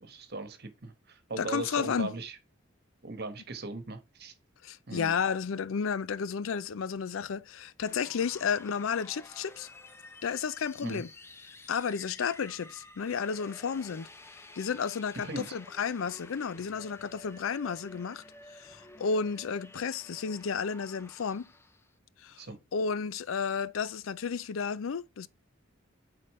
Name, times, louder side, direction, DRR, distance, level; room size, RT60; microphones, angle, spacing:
voice 1, 0.0-2.4 3.0-4.3 4.9-5.1 10.8-11.0 15.2-15.5 22.4-22.6, right 2 dB, 55° right, 1.3 m, -39 dB
voice 2, 1.4-2.1 4.6-9.7 10.2-11.1 11.7-14.1 14.6-18.2 18.6-21.5 22.2-22.4 22.7-25.3, left 6 dB, 80° left, 0.5 m, -32 dB
sound 1, 7.8-21.9, left 2 dB, 15° left, 0.5 m, -52 dB
8.4 x 3.9 x 3.1 m
head